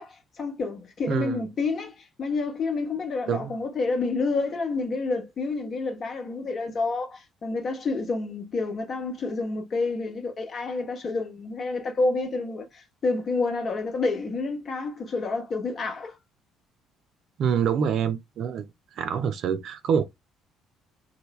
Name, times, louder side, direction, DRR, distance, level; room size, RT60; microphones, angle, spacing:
voice 1, 0.0-16.1, left 3 dB, 45° left, 1.0 m, -29 dB
voice 2, 1.1-1.4 3.3-3.5 17.4-18.7 19.0-20.0, right 7 dB, 55° right, 0.4 m, -26 dB
3.1 x 2.1 x 3.1 m
figure-of-eight pair, 50°, 0 cm